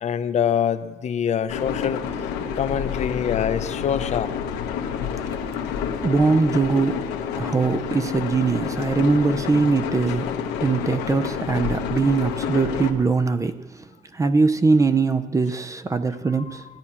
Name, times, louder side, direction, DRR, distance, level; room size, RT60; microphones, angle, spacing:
voice 1, 0.0-2.0 2.5-4.3, left 8 dB, 45° left, 0.5 m, -24 dB
sound 1, 1.5-12.9, left 7 dB, 90° left, 0.9 m, -29 dB
voice 2, 5.5-7.1 7.4-16.7, right 4 dB, 20° right, 0.5 m, -22 dB
17.0 x 9.5 x 2.9 m
cardioid pair, 110°, 17 cm